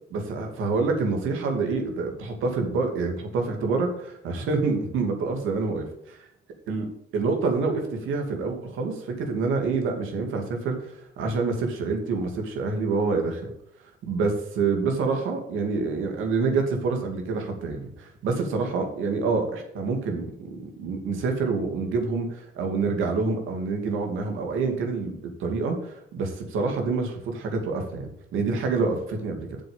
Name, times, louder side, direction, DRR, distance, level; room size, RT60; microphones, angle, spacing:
voice 1, 0.1-5.8 6.7-6.9 7.1-13.5 14.0-20.3 20.8-25.1 25.4-29.6, right 4 dB, 85° right, 4 dB, 2.6 m, -27 dB
7.5 x 7.0 x 7.1 m, 0.76 s
cardioid pair, 90°, 20 cm